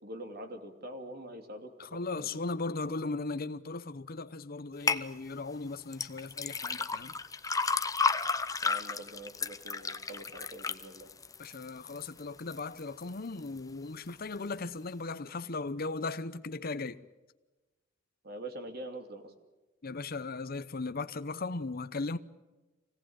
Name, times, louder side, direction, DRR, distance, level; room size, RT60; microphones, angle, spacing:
voice 1, 0.0-2.4 8.6-11.1 18.2-19.3, right 1 dB, 55° right, 2.8 m, -44 dB
voice 2, 1.8-7.1 11.4-17.0 19.8-22.2, left 3 dB, 50° left, 0.8 m, -37 dB
sound 1, 4.9-5.0 5.9-12.1 12.5-13.0 13.5-13.6, left 4 dB, 20° left, 0.8 m, -32 dB
25.5 x 18.0 x 8.9 m
head